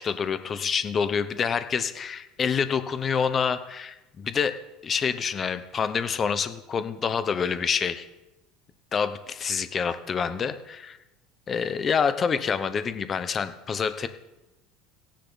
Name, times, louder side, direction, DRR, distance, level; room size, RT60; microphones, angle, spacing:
voice 1, 0.0-4.5 4.8-8.1 8.9-11.0 11.5-14.1, left 6 dB, 25° left, 11 dB, 0.9 m, -27 dB
17.5 x 10.5 x 4.0 m, 0.99 s
cardioid pair, 160°, 0 cm